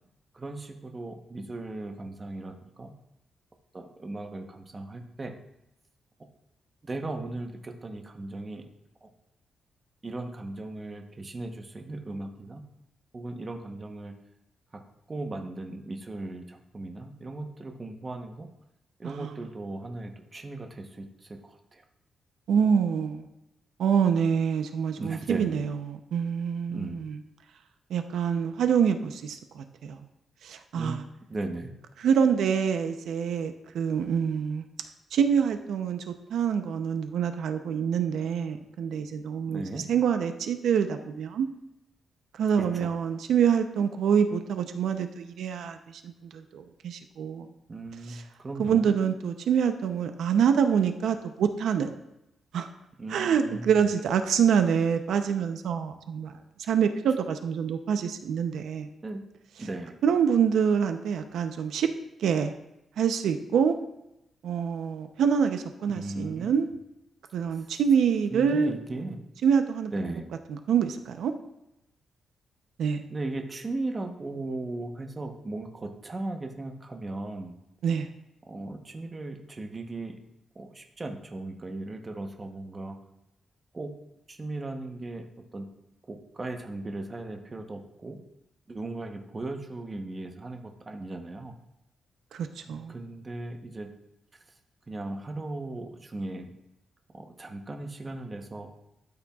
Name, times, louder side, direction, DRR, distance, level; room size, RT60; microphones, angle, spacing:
voice 1, 0.3-2.9 3.7-5.4 6.8-8.6 9.0-9.1 10.0-12.6 13.1-14.1 14.7-14.8 15.1-18.5 19.0-21.8 25.0-25.6 26.7-27.0 30.7-31.7 39.5-39.8 42.6-42.9 47.7-48.9 53.0-53.8 59.0-59.2 59.6-59.9 65.9-66.5 68.3-69.2 69.9-70.3 73.1-77.6 78.5-80.2 80.5-83.0 83.7-83.9 84.3-85.3 85.5-85.7 86.1-88.2 88.7-91.5 92.7-93.9 94.9-96.5 97.1-98.7, right 2 dB, 25° right, 4 dB, 0.9 m, -37 dB
voice 2, 22.5-23.3 23.8-27.2 27.9-30.0 30.4-31.0 32.0-34.6 35.1-41.5 42.3-47.5 48.1-48.2 48.6-51.9 52.5-52.7 53.1-56.3 56.7-58.9 60.0-61.9 62.2-62.5 63.0-63.8 64.4-66.7 67.3-68.7 69.4-69.9 70.5-71.3 72.8-73.0 77.8-78.1 92.3-92.9, right 7 dB, 85° right, 7 dB, 0.6 m, -26 dB
13.0 x 8.7 x 2.4 m, 0.87 s
wide cardioid pair, 150°, 0 cm